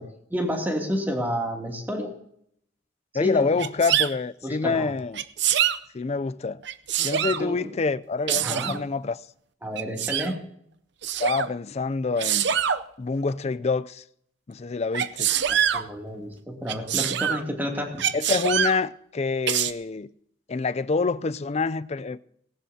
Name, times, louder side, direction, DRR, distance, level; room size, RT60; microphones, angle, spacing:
voice 1, 0.0-2.2 3.2-3.5 4.4-4.9 7.4-7.7 8.3-8.8 9.6-10.4 15.5-18.0, equal, 10° right, 2.7 m, -30 dB
voice 2, 3.1-5.2 5.9-6.6 7.0-9.2 11.2-12.5 13.0-14.0 14.5-15.3 18.1-20.1 20.5-22.2, left 4 dB, 35° left, 0.4 m, -26 dB
Sneeze, 3.6-4.1 5.1-5.8 6.6-7.4 8.3-8.8 9.8-10.3 11.0-11.5 12.2-12.8 14.9-15.8 16.7-17.4 18.0-18.8 19.5-19.7, right 9 dB, 60° right, 0.6 m, -24 dB
19.0 x 17.5 x 2.8 m
head